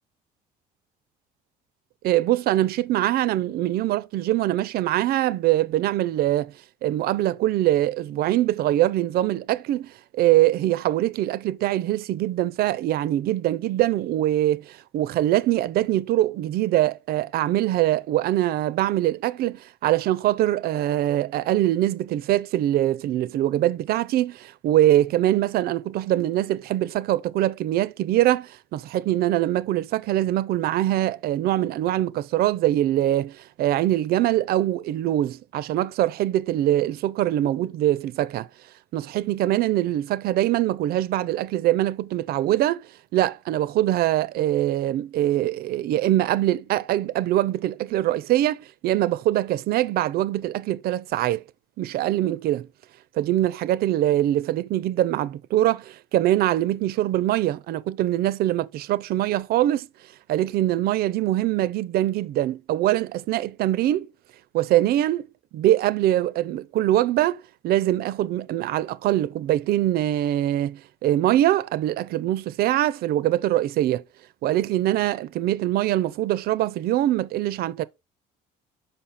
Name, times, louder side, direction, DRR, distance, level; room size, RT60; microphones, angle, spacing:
voice 1, 2.0-6.5 6.8-38.5 38.9-42.9 43.1-51.4 51.8-52.7 53.2-59.9 60.3-64.1 64.5-65.3 65.5-74.0 74.4-77.8, right 14 dB, 65° right, 0.4 m, -23 dB
5.7 x 5.3 x 4.0 m
cardioid pair, 110°, 17 cm